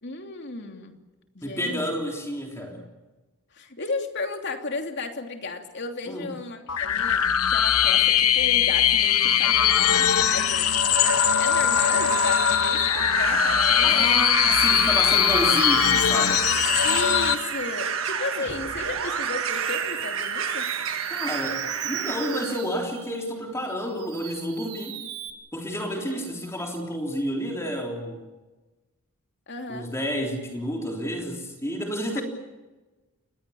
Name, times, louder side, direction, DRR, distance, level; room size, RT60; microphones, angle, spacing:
voice 1, 0.0-1.0 1.3-1.9 3.5-10.7 11.4-14.3 14.9-15.4 16.8-20.7 26.1-26.2 29.5-29.9 32.1-32.2, left 3 dB, 50° left, 4 dB, 2.9 m, -34 dB
voice 2, 1.4-2.8 6.1-6.3 13.8-16.5 21.1-25.0 25.5-28.2 29.7-32.2, equal, 10° left, 1 dB, 3.5 m, -30 dB
sound 1, 6.7-17.3, left 9 dB, 80° left, 1.2 m, -21 dB
sound 2, 10.3-22.6, right 6 dB, 60° right, 1.8 m, -31 dB
Musical instrument, 12.9-23.3 23.7-25.3, right 7 dB, 90° right, 4.6 m, -36 dB
29.0 x 21.5 x 7.1 m, 1.2 s
head